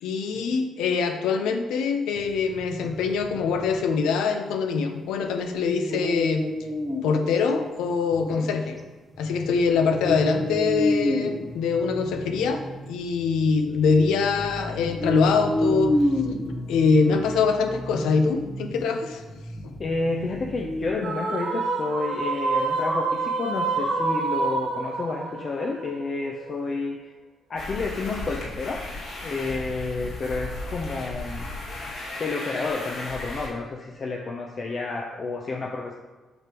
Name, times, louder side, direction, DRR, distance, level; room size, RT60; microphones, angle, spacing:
voice 1, 0.0-6.5 7.0-8.8 9.2-12.6 12.9-15.9 16.7-19.8, left 5 dB, 90° left, 6 dB, 0.6 m, -24 dB
sound 1, 2.2-4.0 5.7-7.2 7.5-7.6 8.1-8.6 9.1-20.9, left 1 dB, 5° left, 0.7 m, -30 dB
voice 2, 19.8-27.1 27.5-28.9 29.2-31.5 32.2-35.9, left 3 dB, 45° left, 1 dB, 0.6 m, -30 dB
sound 2, 21.0-26.5, right 3 dB, 85° right, 2.0 m, -27 dB
sound 3, 27.6-33.5, left 2 dB, 70° left, 2.0 m, -35 dB
7.9 x 5.2 x 3.0 m, 1.3 s
cardioid pair, 90°, 0 cm